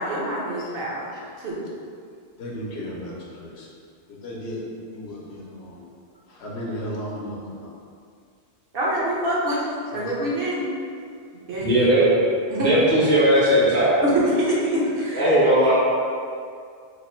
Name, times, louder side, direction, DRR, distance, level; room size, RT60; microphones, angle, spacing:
voice 1, 0.0-1.1 1.4-1.7 8.7-10.7 11.3-11.9 12.5-12.7 14.0-15.2, right 1 dB, 60° right, -6 dB, 0.9 m, -25 dB
voice 2, 2.4-3.7 4.1-5.8 6.3-7.7 9.9-10.2, equal, 70° left, -4 dB, 0.9 m, -35 dB
voice 3, 11.6-12.1 12.6-14.0 15.1-15.7, right 1 dB, 15° left, -8 dB, 0.4 m, -18 dB
3.0 x 2.1 x 4.2 m, 2.2 s
omnidirectional pair, 1.2 m